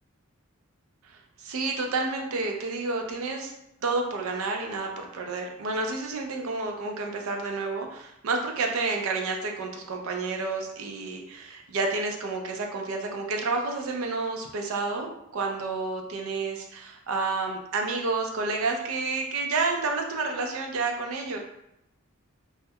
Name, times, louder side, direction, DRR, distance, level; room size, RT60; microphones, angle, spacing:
voice 1, 1.0-3.5 3.8-21.4, right 3 dB, 75° right, 2 dB, 0.4 m, -30 dB
2.3 x 2.0 x 2.7 m, 0.81 s
head